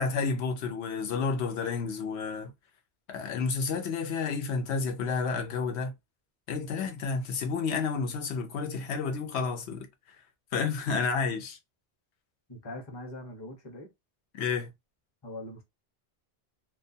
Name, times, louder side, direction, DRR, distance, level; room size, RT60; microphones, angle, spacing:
voice 1, 0.0-2.5 3.1-5.9 6.5-9.9 10.5-11.6 14.3-14.7, left 5 dB, 85° left, 0.9 m, -30 dB
voice 2, 12.5-13.9 15.2-15.6, left 1 dB, 30° left, 0.7 m, -42 dB
2.3 x 2.3 x 2.6 m
omnidirectional pair, 1.1 m